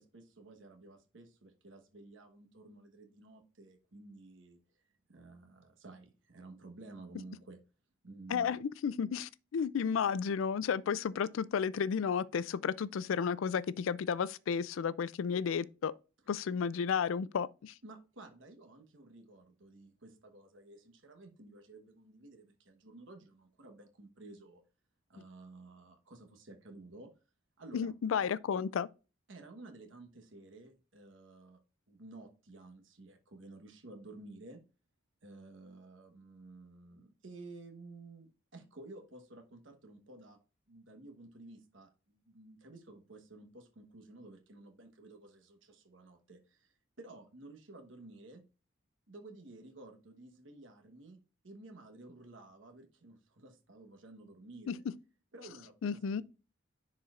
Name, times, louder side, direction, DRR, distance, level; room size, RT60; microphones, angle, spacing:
voice 1, 0.0-4.6 5.1-7.6 8.0-8.5 17.8-24.6 25.1-27.1 27.6-27.9 29.3-31.6 31.9-34.6 35.2-40.4 40.7-48.4 49.1-51.2 51.4-54.8 55.3-56.2, right 2 dB, 70° right, 1.1 m, -53 dB
voice 2, 8.3-15.9 16.3-17.7 27.7-28.9 54.7-54.8 55.8-56.2, left 6 dB, 80° left, 0.4 m, -32 dB
10.5 x 4.3 x 2.4 m
head